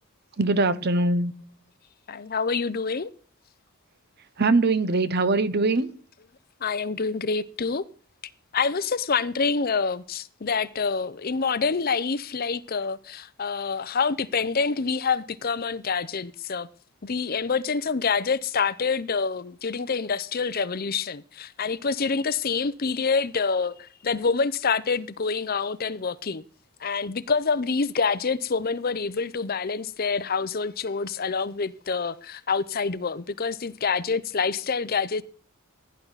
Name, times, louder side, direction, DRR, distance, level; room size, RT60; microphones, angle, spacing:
voice 1, 0.4-1.3 4.4-5.9, right 3 dB, 50° right, 0.8 m, -22 dB
voice 2, 2.1-3.1 6.6-7.8 8.5-16.7 17.0-26.4 26.8-35.2, left 5 dB, 45° left, 0.6 m, -27 dB
16.0 x 10.5 x 4.1 m
head